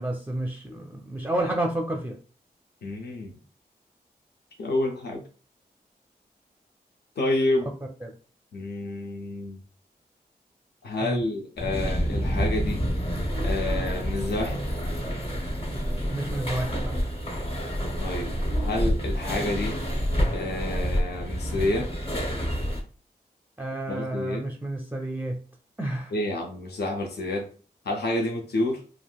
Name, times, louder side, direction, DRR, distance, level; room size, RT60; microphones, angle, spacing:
voice 1, 0.0-2.2 8.0-8.1 11.0-11.2 16.1-16.7 23.6-25.4 25.8-26.1, right 1 dB, 10° right, 1 dB, 0.5 m, -30 dB
voice 2, 2.8-3.3 4.6-5.2 7.2-7.7 8.5-9.6 10.8-12.8 13.4-14.6 18.0-19.8 20.3-21.9 23.9-24.5 26.1-27.5 27.9-28.8, left 2 dB, 70° left, 2 dB, 0.6 m, -29 dB
sound 1, 11.6-22.8, equal, 35° left, 0.9 m, -28 dB
3.3 x 2.5 x 2.3 m, 0.39 s
cardioid pair, 40°, 17 cm